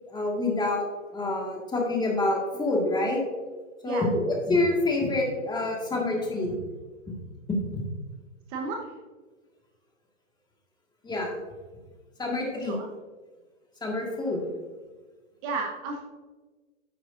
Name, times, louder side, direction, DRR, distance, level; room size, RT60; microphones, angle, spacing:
voice 1, 0.1-0.9 1.1-3.2 3.8-6.6 7.7-7.8 11.0-11.4 12.2-12.7 13.8-14.5, left 2 dB, 10° left, -1 dB, 1.7 m, -27 dB
voice 2, 15.4-16.0, right 3 dB, 35° right, 2 dB, 1.1 m, -32 dB
9.6 x 8.3 x 2.6 m, 1.3 s
hypercardioid pair, 120°, 38 cm